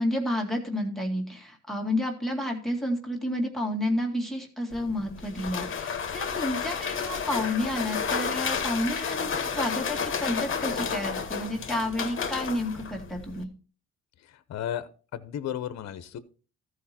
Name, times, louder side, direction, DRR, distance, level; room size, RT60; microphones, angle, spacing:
voice 1, 0.0-13.5, left 1 dB, ahead, 1 dB, 2.1 m, -30 dB
sound 1, 4.7-13.4, left 6 dB, 40° left, 1.2 m, -31 dB
voice 2, 14.2-16.2, left 10 dB, 60° left, 13 dB, 0.9 m, -35 dB
14.0 x 4.8 x 4.3 m, 0.38 s
cardioid pair, 90°, 30 cm